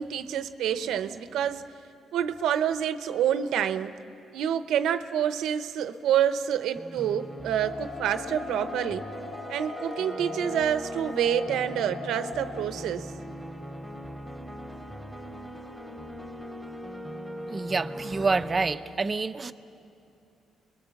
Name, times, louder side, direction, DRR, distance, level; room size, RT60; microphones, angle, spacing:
voice 1, 0.0-1.7 2.1-3.9 4.3-9.1 9.5-13.1, right 9 dB, 80° right, 11 dB, 0.8 m, -27 dB
sound 1, 6.7-18.8, equal, 5° left, 2.8 m, -40 dB
sound 2, 7.6-12.6, left 4 dB, 80° left, 2.8 m, -40 dB
voice 2, 17.5-19.5, right 4 dB, 30° right, 11 dB, 0.8 m, -27 dB
28.5 x 22.0 x 7.1 m, 2.7 s
cardioid pair, 90°, 0 cm